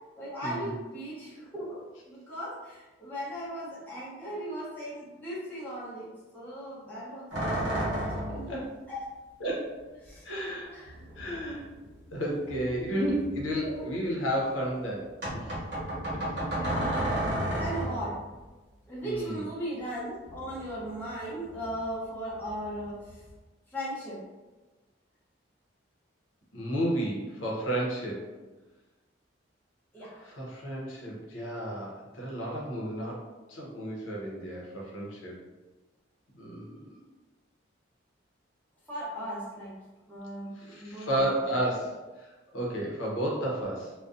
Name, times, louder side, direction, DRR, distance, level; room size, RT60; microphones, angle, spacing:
voice 1, 0.2-8.0 8.3-8.5 8.9-9.0 10.0-10.3 10.7-11.0 13.6-13.9 16.5-18.2 18.9-23.2 23.7-24.2 29.9-30.3 38.9-39.8 40.1-41.4, right 1 dB, 10° left, -8 dB, 0.6 m, -38 dB
sound 1, 7.3-8.6 10.1-10.2 10.8-12.1 12.4-13.9 15.2-18.2 20.3-21.2 21.4-21.9 22.3-23.4, right 1 dB, 55° right, 1.0 m, -33 dB
voice 2, 9.4-9.8 10.2-10.9 11.1-11.7 12.1-15.6 16.1-16.3 19.0-19.5 26.5-28.3 30.2-33.2 33.5-35.3 36.3-37.0 40.5-43.9, right 1 dB, 90° left, -3 dB, 0.7 m, -32 dB
2.5 x 2.2 x 2.4 m, 1.2 s
head